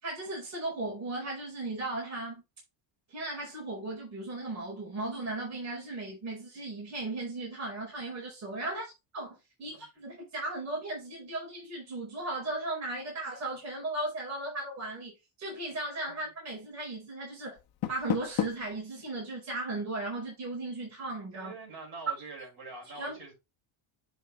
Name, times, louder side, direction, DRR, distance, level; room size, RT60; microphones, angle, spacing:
voice 1, 0.0-2.4 3.1-15.1 15.4-17.6 17.9-21.5 22.9-23.3, right 2 dB, 35° right, 4.7 m, -36 dB
Door, 17.5-18.8, left 12 dB, 50° left, 1.1 m, -33 dB
voice 2, 21.3-23.3, right 3 dB, 50° right, 5.4 m, -44 dB
7.9 x 5.6 x 3.1 m
cardioid pair, 170°, 50 cm